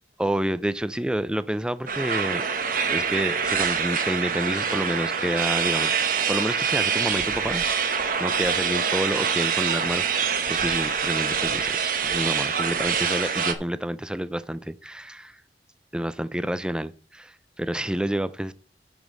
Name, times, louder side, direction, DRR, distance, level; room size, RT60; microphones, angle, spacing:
voice 1, 0.2-2.4 2.9-5.9 6.3-7.6 8.2-15.4 15.9-18.5, right 1 dB, 5° right, 0.4 m, -29 dB
sound 1, 1.9-13.5, right 6 dB, 50° right, 1.0 m, -25 dB
9.4 x 5.1 x 6.1 m
head